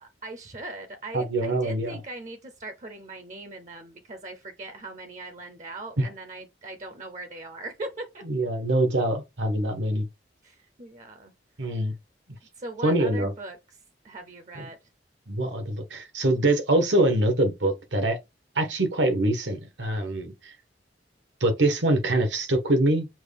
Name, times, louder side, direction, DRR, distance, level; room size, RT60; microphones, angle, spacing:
voice 1, 0.0-8.2 10.4-11.3 11.6-11.8 12.6-13.8 14.0-14.8, right 2 dB, 40° right, 0.6 m, -40 dB
voice 2, 1.1-2.0 6.0-6.1 8.2-10.1 11.6-11.9 12.8-13.3 14.6-14.7 15.3-18.2 18.5-20.5 21.4-23.1, right 1 dB, 85° right, 1.3 m, -24 dB
6.1 x 2.3 x 3.4 m
head